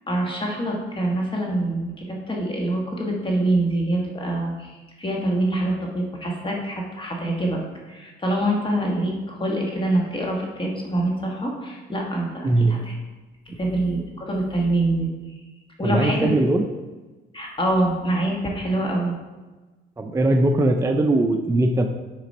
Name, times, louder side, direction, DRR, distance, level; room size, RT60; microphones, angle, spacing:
voice 1, 0.1-7.6 7.9-12.9 13.6-15.1 15.8-16.3 17.3-19.1, right 1 dB, 25° left, -1 dB, 1.3 m, -25 dB
voice 2, 15.8-16.7 20.0-21.9, right 2 dB, 15° right, 4 dB, 0.5 m, -20 dB
6.1 x 5.0 x 4.2 m, 1.2 s
cardioid pair, 90°, 20 cm